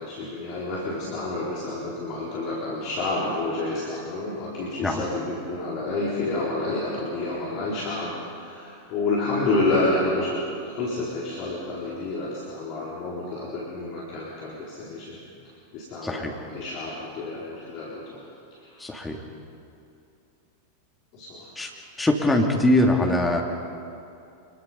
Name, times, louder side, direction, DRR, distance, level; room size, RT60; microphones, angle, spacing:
voice 1, 0.0-15.2 15.4-18.2 18.5-18.9 21.1-21.6, left 2 dB, 40° left, -5 dB, 4.1 m, -29 dB
voice 2, 16.0-16.3 18.8-19.2 21.6-21.7 22.0-23.4, left 1 dB, 5° left, 0 dB, 2.9 m, -22 dB
25.5 x 23.0 x 5.5 m, 2.6 s
figure-of-eight pair, 90°, 0 cm